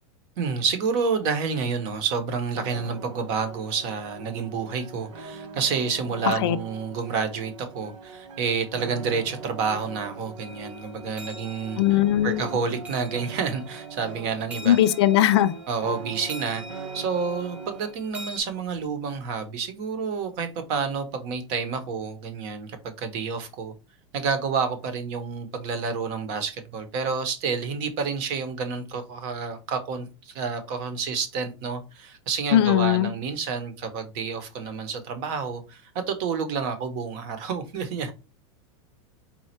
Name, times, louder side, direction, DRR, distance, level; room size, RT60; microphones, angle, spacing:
voice 1, 0.4-14.8 15.7-16.6 16.9-23.7 24.1-38.1, right 5 dB, 35° right, 0.8 m, -29 dB
sound 1, 2.5-18.0, right 5 dB, 80° right, 1.0 m, -41 dB
voice 2, 6.2-6.6 11.8-12.4 14.6-15.5 32.5-33.1, left 12 dB, 60° left, 0.4 m, -19 dB
sound 2, 10.4-18.4, right 1 dB, 10° right, 0.4 m, -45 dB
4.2 x 2.3 x 4.2 m
supercardioid pair, 170°, 16 cm